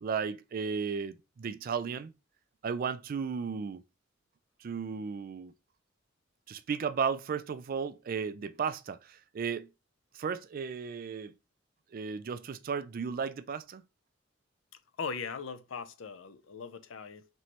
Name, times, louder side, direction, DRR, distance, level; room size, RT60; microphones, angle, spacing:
voice 1, 0.0-2.1 2.6-3.8 4.6-5.5 6.5-9.7 10.1-11.3 11.9-13.8, right 6 dB, 45° right, 0.3 m, -34 dB
voice 2, 15.0-17.3, left 5 dB, 85° left, 0.5 m, -39 dB
4.2 x 3.1 x 3.0 m
head